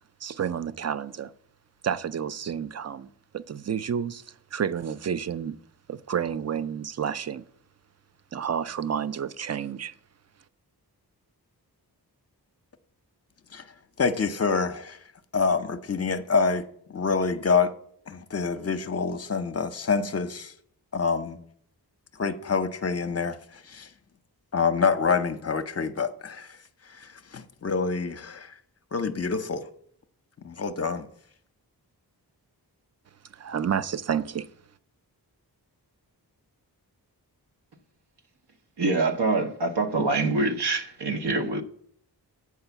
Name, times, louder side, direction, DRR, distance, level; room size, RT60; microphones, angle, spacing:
voice 1, 0.2-1.3 1.8-4.2 4.5-5.6 5.9-7.4 8.3-9.9 33.3-34.5, right 8 dB, 40° right, 0.4 m, -30 dB
voice 2, 14.0-15.0 15.3-17.7 18.1-20.5 20.9-21.4 22.2-23.4 23.7-23.9 24.5-26.5 27.0-28.5 28.9-29.6 30.4-31.1, left 5 dB, 40° left, 0.6 m, -26 dB
voice 3, 38.8-41.6, right 3 dB, 75° right, 0.8 m, -25 dB
8.0 x 4.7 x 6.8 m
wide cardioid pair, 85°, 40 cm